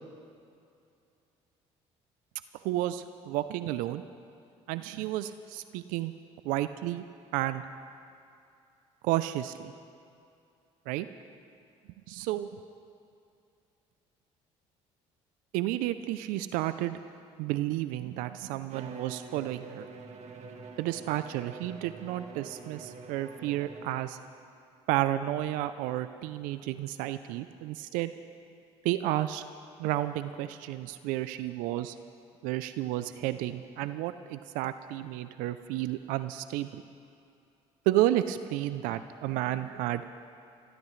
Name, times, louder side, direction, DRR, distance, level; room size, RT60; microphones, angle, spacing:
voice 1, 2.6-4.0 4.7-6.1 6.4-7.0 7.3-7.6 9.0-9.7 10.9-11.1 12.1-12.5 15.5-17.0 17.4-19.9 20.8-24.2 24.9-28.1 28.8-29.4 29.8-32.0 32.4-36.8 37.9-40.0, right 14 dB, 80° right, 12 dB, 0.5 m, -31 dB
Bowed string instrument, 18.7-24.3, right 4 dB, 55° right, 1.7 m, -46 dB
25.0 x 14.5 x 3.2 m, 2.6 s
supercardioid pair, 75°, 14 cm